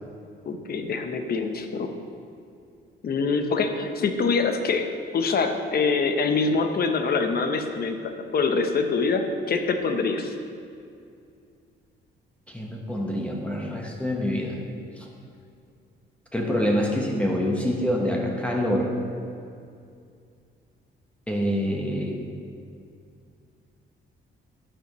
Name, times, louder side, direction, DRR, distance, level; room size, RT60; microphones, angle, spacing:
voice 1, 0.5-1.9 3.0-10.3, left 4 dB, 50° left, 6 dB, 0.9 m, -25 dB
voice 2, 12.5-14.6 15.0-15.1 16.3-18.9 21.3-22.1, equal, 5° left, -1 dB, 1.3 m, -26 dB
12.0 x 8.2 x 3.2 m, 2.4 s
cardioid pair, 90°, 20 cm